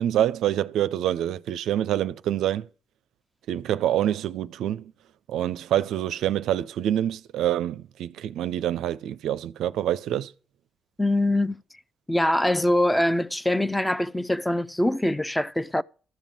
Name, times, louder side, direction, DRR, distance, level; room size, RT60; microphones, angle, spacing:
voice 1, 0.0-2.7 3.5-4.9 5.3-10.3, right 11 dB, 75° right, 0.4 m, -26 dB
voice 2, 11.0-11.6 12.1-15.8, left 1 dB, 10° left, 0.6 m, -23 dB
13.0 x 5.2 x 7.4 m
hypercardioid pair, 40°, 0 cm